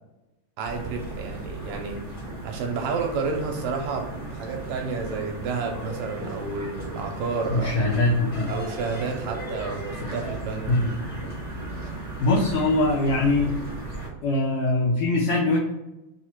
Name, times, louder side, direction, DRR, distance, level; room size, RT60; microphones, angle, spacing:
voice 1, 0.6-2.0 2.4-7.7 8.5-10.7, right 4 dB, 75° right, 2 dB, 1.8 m, -30 dB
sound 1, 0.7-14.1, right 2 dB, 40° left, 0.5 m, -36 dB
voice 2, 7.5-8.5 10.7-10.9 12.2-13.6 14.2-15.6, left 2 dB, 85° left, -2 dB, 1.3 m, -22 dB
4.7 x 2.4 x 4.3 m, 0.97 s
omnidirectional pair, 3.4 m